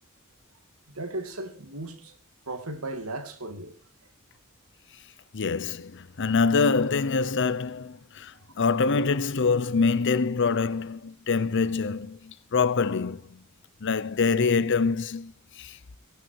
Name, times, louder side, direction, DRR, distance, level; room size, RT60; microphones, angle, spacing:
voice 1, 0.9-2.2 2.5-3.7 8.3-8.4, right 2 dB, 85° right, 2.5 m, -36 dB
voice 2, 5.3-13.4 13.8-15.8, left 4 dB, 60° left, 0.7 m, -25 dB
17.5 x 11.5 x 4.7 m
head